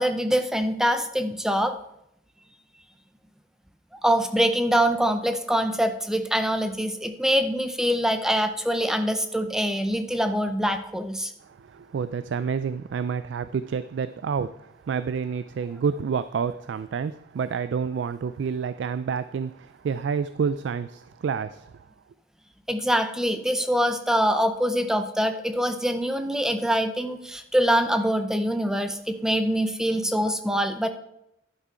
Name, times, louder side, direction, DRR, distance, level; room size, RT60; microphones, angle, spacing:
voice 1, 0.0-1.8 4.0-11.3 22.7-30.9, equal, 5° right, 8 dB, 0.5 m, -24 dB
voice 2, 11.4-21.8, right 6 dB, 65° right, 13 dB, 0.3 m, -29 dB
11.0 x 6.1 x 4.4 m, 0.80 s
head